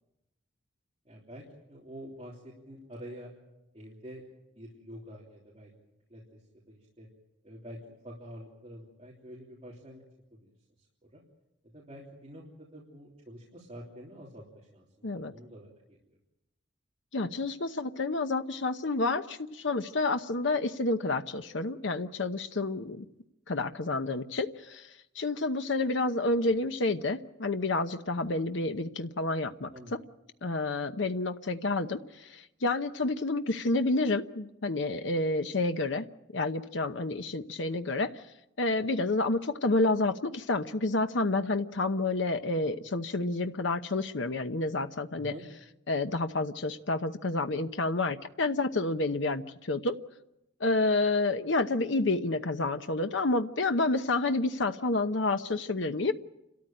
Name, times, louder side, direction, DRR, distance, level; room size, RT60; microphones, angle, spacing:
voice 1, 1.0-3.3 3.7-4.2 4.5-7.1 7.4-10.0 10.3-10.5 11.0-11.2 11.6-16.0 29.7-29.9 45.1-45.4, equal, 30° right, -5 dB, 3.4 m, -47 dB
voice 2, 17.1-23.1 23.5-24.9 25.2-29.7 30.4-36.1 36.3-38.1 38.6-45.3 45.9-50.0 50.6-56.1, left 2 dB, 75° left, 8 dB, 0.9 m, -29 dB
29.5 x 13.5 x 8.9 m, 0.91 s
head